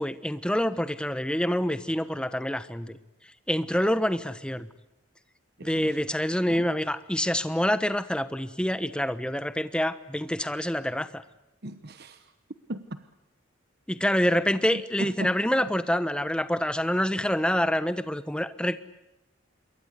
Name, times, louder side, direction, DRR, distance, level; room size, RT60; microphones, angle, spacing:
voice 1, 0.0-3.0 3.5-4.7 5.6-11.2 13.9-18.8, equal, 5° left, 1.1 m, -26 dB
voice 2, 5.6-6.0 6.5-6.7 11.6-12.3 12.7-13.1 14.7-15.5, right 1 dB, 50° right, 1.1 m, -38 dB
27.0 x 23.0 x 8.1 m
head